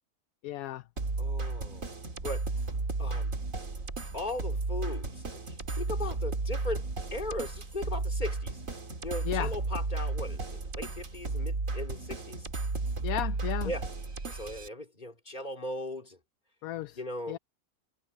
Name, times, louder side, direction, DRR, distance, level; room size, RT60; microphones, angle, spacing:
voice 1, 0.4-0.8 9.2-9.5 13.0-13.7 16.6-17.0 17.3-17.4, left 14 dB, 75° left, 1.0 m, -34 dB
sound 1, 1.0-14.7, right 3 dB, 60° right, 3.0 m, -33 dB
voice 2, 1.2-1.8 2.2-2.4 3.0-3.3 4.1-8.6 9.0-12.5 13.6-13.9 14.3-16.2 16.9-17.4, left 1 dB, 30° left, 3.4 m, -38 dB
omnidirectional pair, 1.6 m